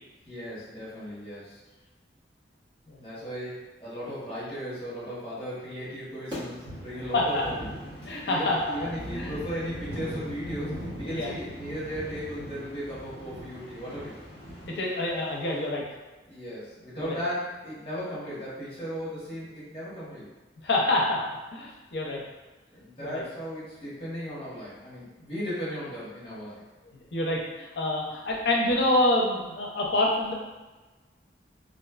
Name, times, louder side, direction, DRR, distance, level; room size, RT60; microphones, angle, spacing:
voice 1, 0.2-1.6 3.0-7.7 8.2-14.1 16.3-20.3 22.7-26.6, equal, 30° left, -9 dB, 1.0 m, -36 dB
sound 1, 6.3-15.7, equal, 25° right, 1.2 m, -40 dB
voice 2, 8.1-8.6 9.1-9.3 11.1-11.3 14.7-15.8 17.0-17.2 20.6-21.2 21.5-22.2 23.0-23.2 26.9-30.3, left 1 dB, 65° left, -2 dB, 0.5 m, -26 dB
2.5 x 2.3 x 2.3 m, 1.2 s
head